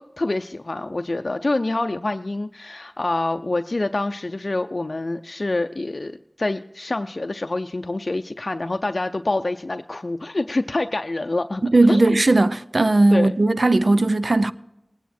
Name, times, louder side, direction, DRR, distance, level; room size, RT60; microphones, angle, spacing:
voice 1, 0.0-12.2 13.1-13.4, left 2 dB, 65° left, 0.5 m, -26 dB
voice 2, 11.6-14.5, right 2 dB, 70° right, 0.5 m, -17 dB
20.5 x 9.4 x 4.3 m
wide cardioid pair, 50°, 0 cm